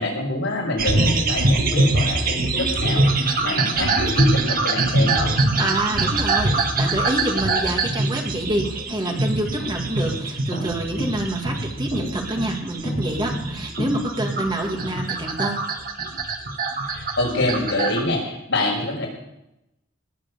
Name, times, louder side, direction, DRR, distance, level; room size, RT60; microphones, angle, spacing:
voice 1, 0.0-5.3 16.9-19.1, left 2 dB, 65° left, -2 dB, 6.3 m, -26 dB
sound 1, 0.8-18.0, right 2 dB, 45° right, 1.7 m, -23 dB
voice 2, 5.6-15.7, right 1 dB, 25° right, 2 dB, 2.0 m, -27 dB
sound 2, 8.4-14.9, equal, 35° left, 5.2 m, -32 dB
19.5 x 7.7 x 7.1 m, 0.85 s
head